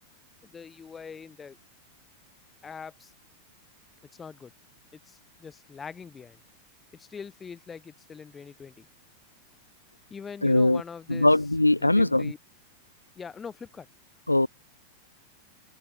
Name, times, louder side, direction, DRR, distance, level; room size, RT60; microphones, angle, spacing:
voice 1, 0.4-1.6 2.6-3.1 4.2-4.5 4.9-6.4 6.9-8.9 10.1-11.3 11.8-12.4 13.1-13.9, left 6 dB, 20° left, 6.5 m, -43 dB
voice 2, 10.4-10.8 11.1-12.3 14.3-14.5, left 2 dB, 85° left, 0.3 m, -21 dB
figure-of-eight pair, 90°, 0 cm